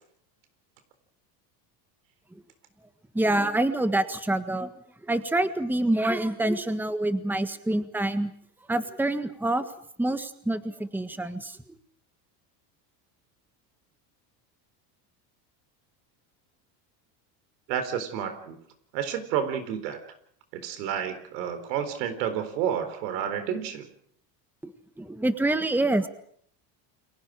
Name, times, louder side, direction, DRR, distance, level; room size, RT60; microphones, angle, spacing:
voice 1, 3.1-4.7 5.0-8.3 8.7-9.6 10.0-11.6 24.6-24.7 25.0-26.1, right 1 dB, 5° right, 10 dB, 1.6 m, -26 dB
voice 2, 17.7-18.6 18.9-20.0 20.5-23.9, right 8 dB, 80° right, 9 dB, 4.2 m, -30 dB
30.0 x 22.5 x 5.1 m, 0.63 s
supercardioid pair, 105°, 50 cm